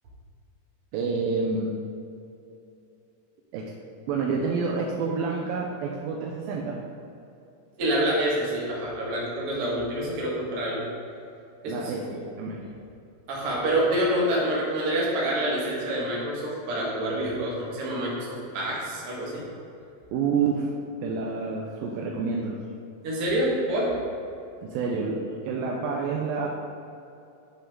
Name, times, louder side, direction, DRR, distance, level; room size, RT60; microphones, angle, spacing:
voice 1, 0.9-1.8 3.5-3.7 4.1-6.8 11.7-12.1 12.4-12.7 20.1-20.7 21.0-22.6 24.6-26.5, right 4 dB, 80° right, -1 dB, 2.3 m, -28 dB
voice 2, 7.8-10.8 11.6-12.2 13.3-19.5 23.0-23.9, right 1 dB, 45° right, -5 dB, 2.0 m, -27 dB
10.0 x 5.6 x 3.7 m, 2.7 s
omnidirectional pair, 4.4 m